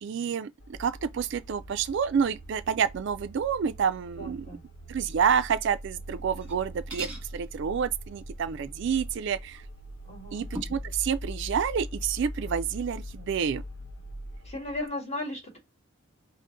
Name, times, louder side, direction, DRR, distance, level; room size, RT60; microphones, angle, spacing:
voice 1, 0.0-4.5 4.9-9.6 10.3-13.6, right 7 dB, 55° right, 0.3 m, -29 dB
sound 1, 0.6-14.9, equal, 55° left, 1.0 m, -42 dB
voice 2, 4.2-4.6 10.0-10.4 14.4-15.6, left 1 dB, 30° left, 1.8 m, -36 dB
sound 2, 6.3-6.6 6.9-7.3 9.5-9.6 10.5-10.9, right 1 dB, 10° right, 1.8 m, -38 dB
5.4 x 2.1 x 3.8 m
head